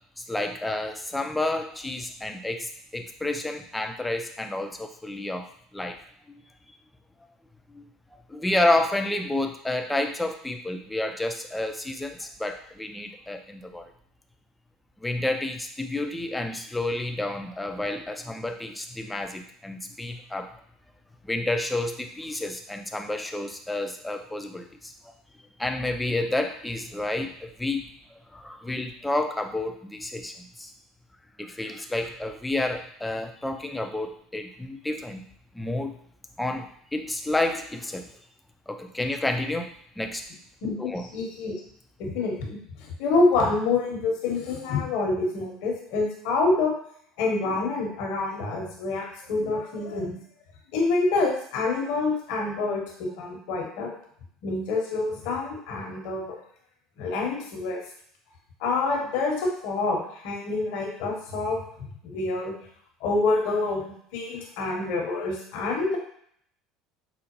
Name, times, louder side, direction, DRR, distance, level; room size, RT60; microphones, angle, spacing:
voice 1, 0.2-5.5 5.7-6.0 6.3-6.4 7.7-7.9 8.3-13.9 15.0-20.6 21.2-24.9 25.6-27.9 28.3-30.7 31.4-35.2 35.5-35.9 36.4-38.1 38.7-40.2 40.8-41.1, left 2 dB, 10° left, 5 dB, 0.5 m, -30 dB
voice 2, 40.6-41.5 42.0-46.8 47.2-50.2 50.7-53.9 54.4-56.4 57.0-57.8 58.6-61.6 62.0-62.5 63.0-66.0, left 3 dB, 70° left, 1 dB, 1.0 m, -27 dB
4.9 x 2.0 x 3.0 m, 0.64 s
supercardioid pair, 90°, 0 cm